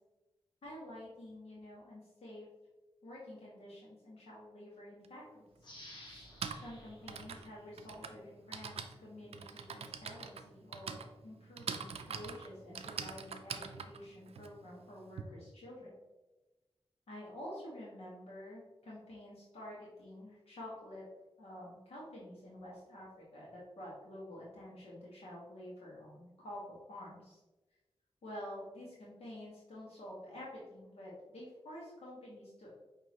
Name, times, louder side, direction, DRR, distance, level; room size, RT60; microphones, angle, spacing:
voice 1, 0.6-2.5 3.0-5.5 6.0-6.3 6.5-15.9 17.1-21.0 21.4-26.6 26.9-27.4 28.2-32.7, left 1 dB, 80° left, -6 dB, 1.4 m, -49 dB
Typing, 5.0-5.1 6.1-15.2, right 6 dB, 85° right, 0.4 m, -44 dB
sound 1, 5.6-8.3 8.8-8.9, left 1 dB, 50° left, 1.2 m, -55 dB
6.3 x 2.9 x 2.9 m, 1.1 s
wide cardioid pair, 85°, 10 cm